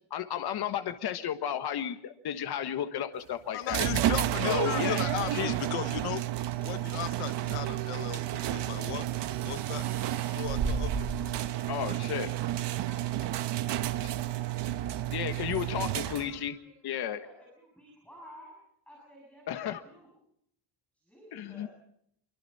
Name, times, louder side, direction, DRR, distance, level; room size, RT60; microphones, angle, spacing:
voice 1, 0.1-3.8 4.4-5.1 5.3-5.5 11.7-12.3 14.0-14.1 15.1-16.6 16.8-17.2 19.5-19.8 21.3-21.7, left 10 dB, 50° left, 8 dB, 1.5 m, -33 dB
voice 2, 3.5-6.2 6.6-9.1 9.4-9.9 10.3-11.1, left 13 dB, 85° left, 13 dB, 1.2 m, -36 dB
sound 1, 3.7-16.5, right 13 dB, 55° right, 1.1 m, -31 dB
sound 2, 5.5-15.7, right 4 dB, 85° right, 5.7 m, -41 dB
voice 3, 11.1-18.6 18.8-20.1 20.9-21.7, equal, 5° left, -3 dB, 7.0 m, -55 dB
26.5 x 24.5 x 4.2 m, 0.71 s
cardioid pair, 170°, 50 cm